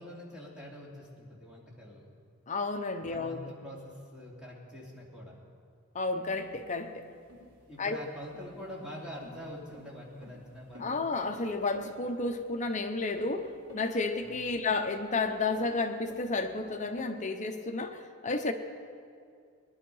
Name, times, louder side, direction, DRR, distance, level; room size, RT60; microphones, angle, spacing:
voice 1, 0.0-2.0 3.0-5.4 7.7-11.0 14.2-14.3, equal, 5° right, -5 dB, 2.7 m, -45 dB
voice 2, 2.5-3.5 5.9-7.1 7.8-8.0 10.8-18.5, left 3 dB, 35° left, 7 dB, 0.8 m, -32 dB
sound 1, 6.3-17.1, left 1 dB, 75° right, 4.0 m, -51 dB
20.0 x 11.5 x 5.5 m, 2.3 s
head